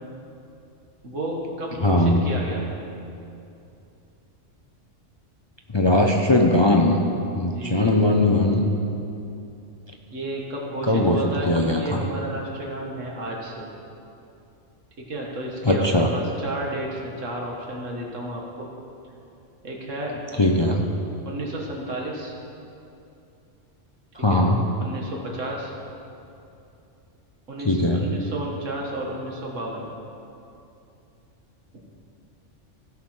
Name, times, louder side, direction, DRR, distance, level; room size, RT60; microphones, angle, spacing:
voice 1, 1.0-2.8 7.4-7.9 10.1-13.7 15.1-15.8 16.1-18.7 19.6-20.1 21.3-22.3 24.3-24.4 24.8-25.7 27.5-29.9, right 1 dB, 85° right, -2 dB, 1.9 m, -32 dB
voice 2, 1.8-2.2 5.7-7.0 7.4-8.7 10.9-11.2 11.5-11.8 15.6-16.1 20.4-20.8 24.2-24.6 27.6-28.1, left 1 dB, 30° left, 1 dB, 0.5 m, -19 dB
16.0 x 6.3 x 4.4 m, 2.7 s
omnidirectional pair, 1.3 m